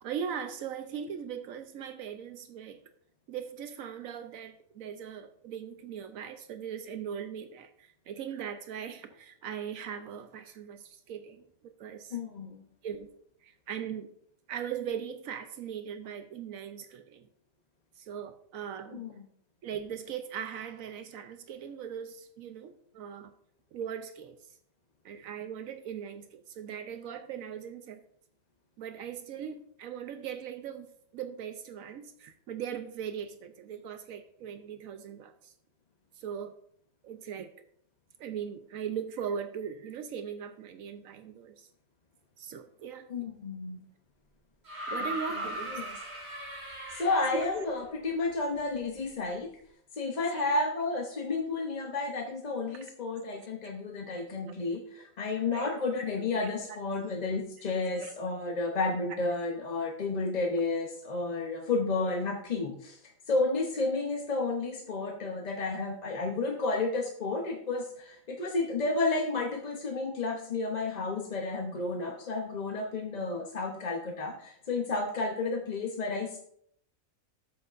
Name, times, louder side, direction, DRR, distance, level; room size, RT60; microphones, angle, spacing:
voice 1, 0.0-2.8 3.3-12.2 12.8-13.1 13.4-14.1 14.5-17.3 18.0-19.0 19.6-23.3 23.7-24.4 25.0-28.0 28.8-35.5 36.2-36.6 37.0-37.5 38.2-41.7 42.4-43.1 44.9-45.8 47.3-47.5 50.3-50.4 53.3-53.7 54.5-54.6 55.5-55.7 56.3-56.8 58.0-58.1, right 8 dB, 80° right, 8 dB, 1.0 m, -39 dB
voice 2, 12.1-12.7 18.9-19.2 43.1-43.8 45.0-46.0 46.3-46.4 46.9-49.5 49.9-63.0 63.3-76.4, left 3 dB, 40° left, 2 dB, 0.7 m, -32 dB
sound 1, 44.6-47.7 49.0-49.1, right 1 dB, 50° right, 4.6 m, -38 dB
11.5 x 7.8 x 2.5 m, 0.67 s
omnidirectional pair, 1.4 m